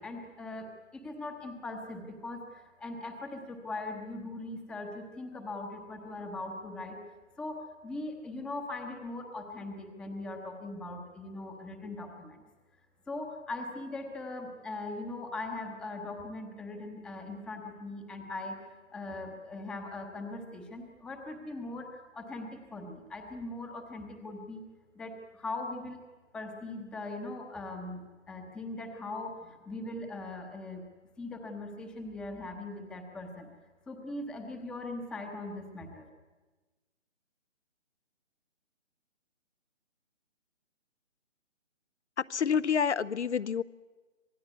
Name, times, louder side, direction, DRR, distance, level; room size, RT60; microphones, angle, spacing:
voice 1, 0.0-7.0 7.4-12.4 13.1-18.6 18.9-24.6 24.9-26.0 26.3-30.8 31.2-33.5 33.9-36.1, left 2 dB, ahead, 4 dB, 0.8 m, -40 dB
voice 2, 42.3-43.6, left 7 dB, 65° left, 17 dB, 0.7 m, -28 dB
26.0 x 17.5 x 9.4 m, 1.3 s
figure-of-eight pair, 150°, 38 cm